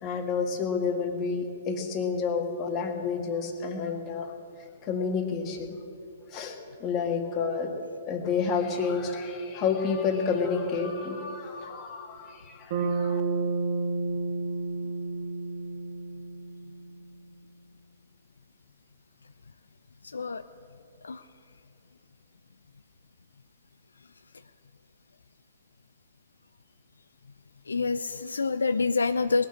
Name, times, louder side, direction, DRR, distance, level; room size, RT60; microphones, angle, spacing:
voice 1, 0.0-5.8 6.3-7.7 8.1-13.2, left 5 dB, 30° left, 4 dB, 1.7 m, -30 dB
Bass guitar, 12.7-17.1, right 3 dB, 50° right, 2.1 m, -31 dB
voice 2, 27.7-29.5, left 4 dB, 75° left, 12 dB, 0.3 m, -26 dB
19.5 x 6.7 x 9.9 m, 2.7 s
figure-of-eight pair, 115°, 0 cm